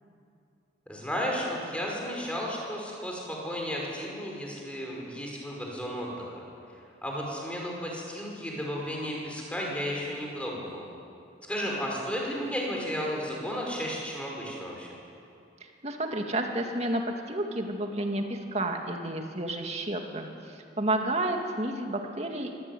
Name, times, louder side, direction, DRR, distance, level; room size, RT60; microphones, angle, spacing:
voice 1, 0.9-6.4 7.0-10.9 11.5-14.9, equal, 5° left, -2 dB, 5.3 m, -33 dB
voice 2, 15.8-22.6, right 1 dB, 35° right, 3 dB, 2.3 m, -31 dB
24.5 x 17.5 x 9.3 m, 2.5 s
head